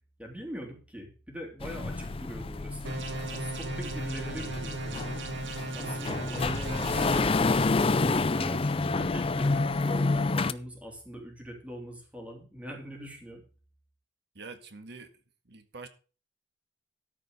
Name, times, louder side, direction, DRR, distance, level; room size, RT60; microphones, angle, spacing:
voice 1, 0.2-3.0 3.3-5.2 5.7-7.7 8.0-13.4, equal, 5° right, 3.1 m, -42 dB
sound 1, 1.6-10.5, left 3 dB, 30° left, 0.5 m, -29 dB
sound 2, 2.8-7.2, right 2 dB, 80° right, 2.0 m, -36 dB
voice 2, 14.4-15.1 15.5-15.9, right 4 dB, 60° right, 1.7 m, -45 dB
13.5 x 5.3 x 6.6 m
head